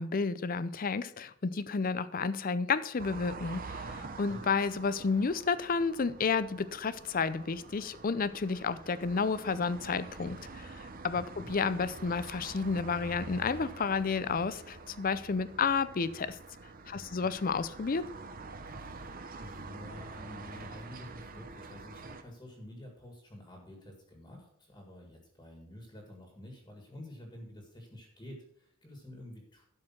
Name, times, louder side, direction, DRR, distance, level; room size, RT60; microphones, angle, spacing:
voice 1, 0.0-10.7 11.0-16.4 16.9-18.1, left 5 dB, 40° left, 15 dB, 0.5 m, -31 dB
sound 1, 3.0-22.2, right 3 dB, 40° right, 0.8 m, -46 dB
voice 2, 11.1-11.5 16.9-17.3 18.6-29.7, left 1 dB, 20° left, 1 dB, 1.8 m, -49 dB
12.0 x 4.9 x 5.8 m, 0.71 s
head